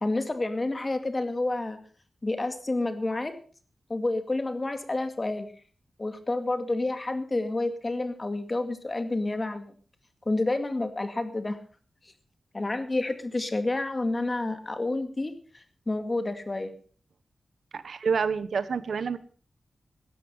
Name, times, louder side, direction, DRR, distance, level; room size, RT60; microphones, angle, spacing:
voice 1, 0.0-1.8 2.2-3.3 3.9-5.5 6.0-9.7 10.3-11.6 12.5-16.7, left 2 dB, 30° left, 9 dB, 2.2 m, -29 dB
voice 2, 17.7-19.2, right 5 dB, 85° right, 14 dB, 1.1 m, -28 dB
16.5 x 13.0 x 5.5 m, 0.41 s
wide cardioid pair, 125°, 0 cm